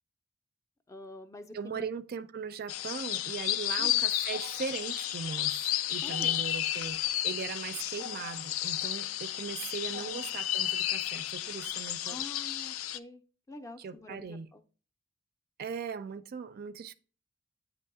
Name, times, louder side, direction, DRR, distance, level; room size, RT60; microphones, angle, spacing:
voice 1, 0.9-1.9 3.8-4.0 6.0-6.4 10.0-10.3 12.0-13.2 13.5-14.6, left 2 dB, 15° left, 0.4 m, -47 dB
voice 2, 1.5-12.2 13.8-14.5 15.6-16.9, right 6 dB, 50° right, 0.4 m, -39 dB
sound 1, 2.7-13.0, left 13 dB, 80° left, 0.4 m, -32 dB
8.5 x 3.0 x 4.6 m
head